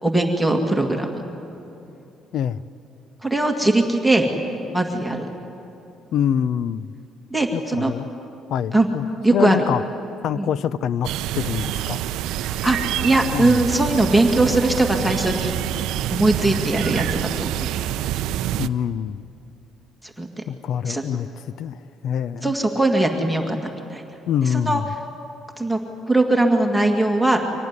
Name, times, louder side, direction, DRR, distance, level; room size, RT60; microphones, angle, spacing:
voice 1, 0.0-1.1 3.2-4.3 4.7-5.3 7.3-7.9 8.7-8.9 9.2-9.6 10.4-10.5 12.4-15.6 16.1-17.7 20.0-20.3 20.9-21.0 22.4-24.0 24.4-24.8 25.6-25.8 26.1-27.4, right 2 dB, ahead, 1 dB, 2.0 m, -20 dB
voice 2, 6.1-6.9 7.5-8.1 8.5-9.1 9.3-9.8 10.2-11.1 11.4-12.0 13.3-13.6 18.6-19.2 20.5-21.3 21.6-22.5 24.3-24.9, left 9 dB, 65° left, 17 dB, 0.5 m, -25 dB
sound 1, 11.0-18.7, right 12 dB, 90° right, 0.5 m, -26 dB
24.5 x 18.5 x 9.6 m, 2.9 s
cardioid pair, 130°, 0 cm